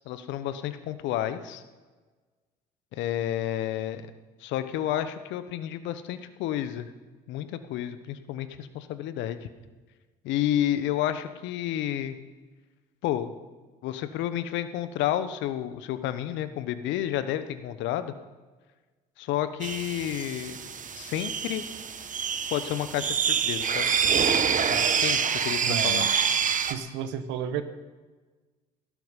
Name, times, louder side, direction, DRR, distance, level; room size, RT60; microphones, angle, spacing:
voice 1, 0.0-1.6 2.9-4.0 4.4-6.9 7.3-9.5 10.2-12.2 13.0-13.3 13.8-18.1 19.2-20.6 20.9-21.6 22.5-23.9 24.7-26.0, left 12 dB, 65° left, 11 dB, 1.1 m, -30 dB
sound 1, 19.6-26.7, right 6 dB, 40° right, 1.3 m, -26 dB
voice 2, 25.6-26.1 26.7-27.6, right 9 dB, 65° right, 11 dB, 1.3 m, -32 dB
17.0 x 12.0 x 5.6 m, 1.3 s
hypercardioid pair, 60°, 20 cm